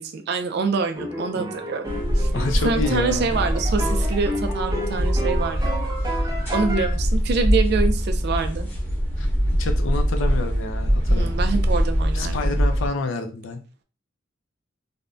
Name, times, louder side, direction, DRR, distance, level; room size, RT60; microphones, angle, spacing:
voice 1, 0.3-2.3 2.6-5.8 6.5-8.7 11.1-12.6, right 4 dB, 55° right, 7 dB, 0.3 m, -26 dB
sound 1, 0.9-6.9, equal, 20° right, 0.6 m, -31 dB
sound 2, 1.9-12.9, equal, 10° left, 0.9 m, -23 dB
voice 2, 2.3-3.3 9.2-9.3 9.6-11.3 12.1-13.6, left 3 dB, 85° left, 6 dB, 0.5 m, -28 dB
3.4 x 2.1 x 2.5 m, 0.35 s
head